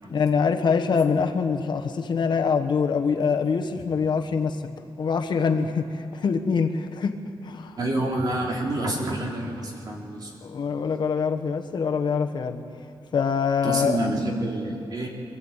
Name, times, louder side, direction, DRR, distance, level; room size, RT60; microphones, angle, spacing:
voice 1, 0.1-7.2 7.4-7.8 10.4-12.6 13.1-14.0, left 5 dB, 55° left, 5 dB, 1.2 m, -24 dB
voice 2, 7.8-10.3 13.6-15.1, right 1 dB, 45° right, -1 dB, 3.4 m, -28 dB
24.5 x 13.5 x 8.9 m, 2.8 s
wide cardioid pair, 170°, 9 cm